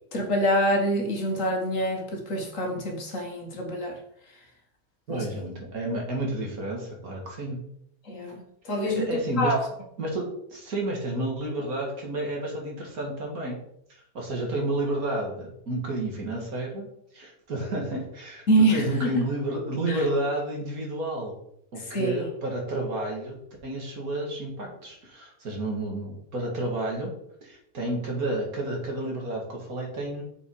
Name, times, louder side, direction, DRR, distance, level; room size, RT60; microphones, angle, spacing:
voice 1, 0.1-4.0 5.1-5.3 8.1-9.7 18.5-19.2 19.9-20.0 21.9-22.3, right 1 dB, 55° left, 2 dB, 1.7 m, -26 dB
voice 2, 5.1-7.6 8.8-9.5 10.0-13.6 14.1-16.9 17.1-21.4 21.7-23.4 23.6-27.1 27.4-30.2, right 1 dB, 60° right, 0 dB, 2.4 m, -30 dB
6.9 x 5.5 x 4.7 m, 0.73 s
omnidirectional pair, 1.7 m